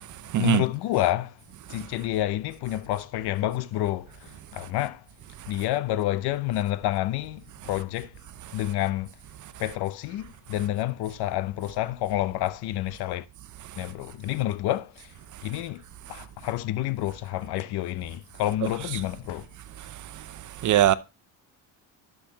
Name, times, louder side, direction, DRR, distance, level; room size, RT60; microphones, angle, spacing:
voice 1, 0.4-1.3 1.7-5.0 5.5-8.1 8.5-9.1 9.6-13.2 13.8-15.1 15.4-15.8 16.1-19.5, left 14 dB, 65° left, 0.8 m, -29 dB
voice 2, 20.6-20.9, right 12 dB, 45° right, 0.6 m, -19 dB
12.0 x 6.4 x 2.9 m
cardioid pair, 115°, 43 cm